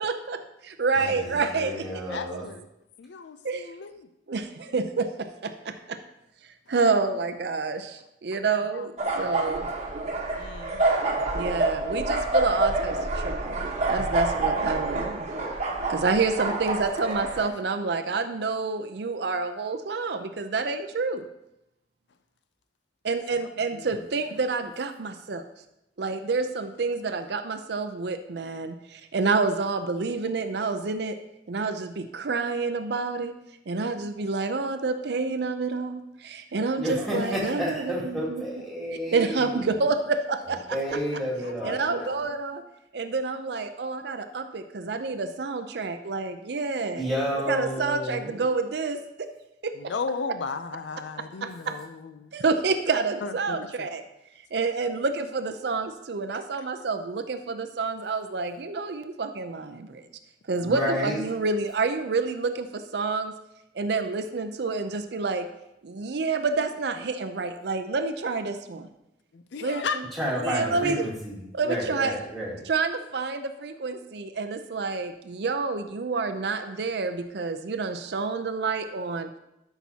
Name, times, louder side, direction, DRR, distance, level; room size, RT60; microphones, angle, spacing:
voice 1, 0.0-1.9 3.4-3.7 4.3-6.0 6.7-9.7 11.3-15.3 15.9-21.3 23.0-25.4 26.0-31.2 31.5-33.3 33.7-38.4 39.1-41.0 41.6-42.6 42.9-47.0 47.5-49.3 49.6-49.7 51.4-51.7 52.3-54.0 54.5-60.1 60.5-63.3 63.7-65.5 65.8-68.9 69.6-70.0 70.4-71.1 71.5-72.1 72.7-79.3, right 4 dB, 65° right, 7 dB, 0.5 m, -28 dB
voice 2, 0.9-2.5 36.8-39.6 40.7-42.2 47.0-48.4 60.6-61.2 70.1-72.6, equal, ahead, -5 dB, 2.2 m, -31 dB
voice 3, 2.1-2.7 3.0-4.1 8.5-8.9 10.4-10.8 23.7-24.0 41.4-42.4 47.3-47.4 49.8-52.3 53.2-53.9 69.3-70.0, left 5 dB, 70° left, 10 dB, 0.4 m, -36 dB
sound 1, 9.0-17.5, right 2 dB, 40° right, 1.2 m, -27 dB
12.5 x 5.9 x 2.8 m, 0.87 s
head